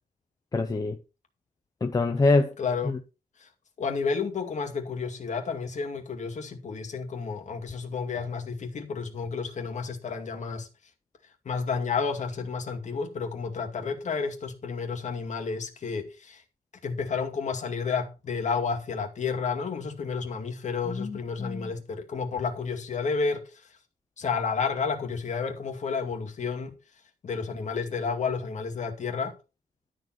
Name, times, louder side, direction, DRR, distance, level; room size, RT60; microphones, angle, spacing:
voice 1, 0.5-1.0 1.8-2.5 2.8-3.0 20.9-21.7, left 3 dB, 25° left, 0.8 m, -25 dB
voice 2, 2.6-2.9 3.4-3.5 3.8-10.7 11.4-16.4 16.8-23.7 24.2-26.8 27.2-29.3, left 5 dB, 50° left, 2.3 m, -31 dB
12.5 x 4.8 x 6.0 m
wide cardioid pair, 160°, 16 cm